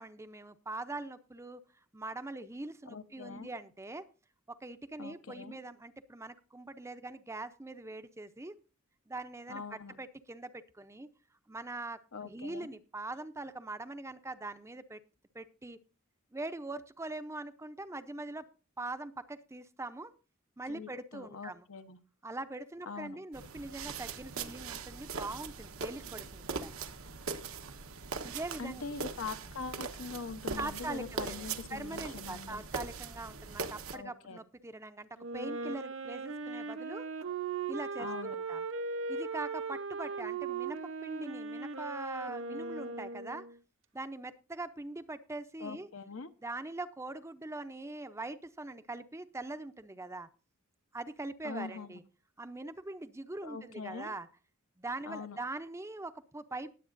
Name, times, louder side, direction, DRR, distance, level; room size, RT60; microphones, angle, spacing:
voice 1, 0.0-1.6 1.9-4.1 4.5-8.5 9.1-11.1 11.5-15.0 15.3-15.8 16.3-18.5 18.8-20.1 20.6-21.7 22.2-26.7 28.2-28.9 30.6-37.1 37.7-38.6 39.1-43.4 43.9-45.9 46.4-50.3 50.9-52.0 52.4-54.3 54.8-56.7, right 2 dB, 15° right, 11 dB, 0.6 m, -42 dB
voice 2, 2.9-3.5 5.0-5.6 9.5-10.0 12.1-12.7 20.7-22.0 22.9-23.2 28.6-32.6 33.9-34.4 38.0-38.4 45.6-46.3 51.4-52.0 53.4-54.1 55.1-55.4, left 4 dB, 75° left, 9 dB, 1.0 m, -43 dB
sound 1, 23.3-34.0, right 5 dB, 80° right, 1.1 m, -41 dB
Wind instrument woodwind instrument, 35.2-43.6, right 4 dB, 65° right, 0.9 m, -38 dB
19.5 x 8.2 x 2.6 m, 0.34 s
head